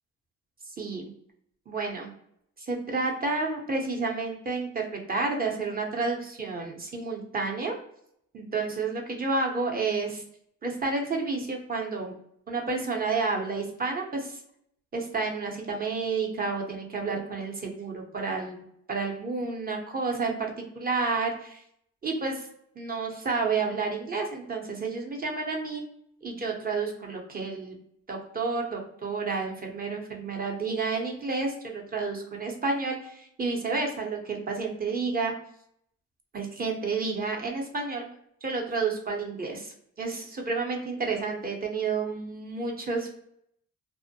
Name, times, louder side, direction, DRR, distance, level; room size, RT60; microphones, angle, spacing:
voice 1, 0.8-1.1 1.7-2.1 2.7-7.8 8.3-10.2 10.6-12.1 12.5-14.4 14.9-18.6 18.9-21.6 22.0-22.5 22.8-25.8 26.2-27.8 28.1-35.3 36.3-38.1 38.4-43.1, right 4 dB, 30° right, 0 dB, 0.6 m, -30 dB
2.5 x 2.0 x 2.6 m, 0.70 s
cardioid pair, 90°, 30 cm